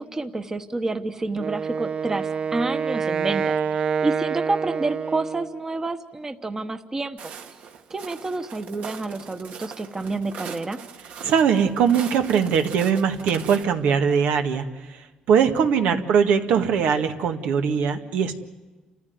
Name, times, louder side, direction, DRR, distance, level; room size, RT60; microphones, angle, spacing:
voice 1, 0.0-3.6 4.0-7.2 7.9-10.8 15.9-16.1, right 3 dB, 20° right, 8 dB, 1.1 m, -29 dB
Wind instrument woodwind instrument, 1.4-5.6, right 6 dB, 55° right, 0.9 m, -27 dB
Walk footsteps, 7.2-13.6, right 6 dB, 70° right, 2.1 m, -41 dB
voice 2, 11.2-18.4, right 7 dB, 85° right, 6 dB, 1.9 m, -21 dB
29.0 x 14.5 x 9.4 m, 1.2 s
cardioid pair, 130°, 2 cm